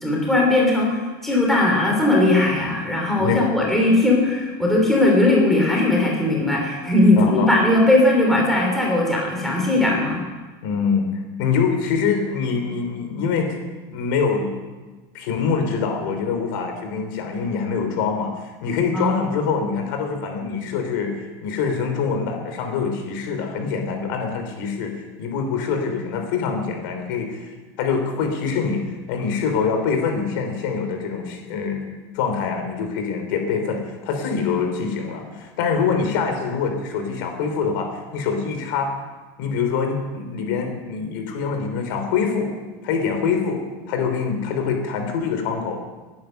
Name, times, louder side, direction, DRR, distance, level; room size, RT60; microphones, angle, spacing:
voice 1, 0.0-10.2 18.9-19.2, left 2 dB, 5° left, -2 dB, 3.0 m, -18 dB
voice 2, 7.2-7.5 10.6-13.6 13.9-14.5 15.1-31.9 32.1-38.9 39.4-42.5 42.8-45.8, left 5 dB, 65° left, 5 dB, 3.3 m, -24 dB
19.0 x 9.5 x 6.6 m, 1.3 s
supercardioid pair, 175°, 12 cm